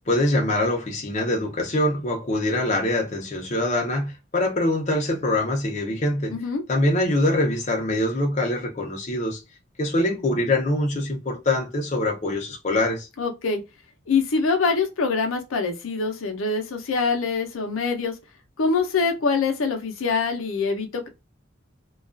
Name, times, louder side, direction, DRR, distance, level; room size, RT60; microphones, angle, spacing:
voice 1, 0.1-6.3 6.7-9.4 9.8-13.1, left 1 dB, 35° left, 0.6 m, -24 dB
voice 2, 6.3-6.6 13.2-13.6 14.1-18.1 18.6-21.1, left 4 dB, 85° left, 0.6 m, -24 dB
2.3 x 2.2 x 2.4 m
head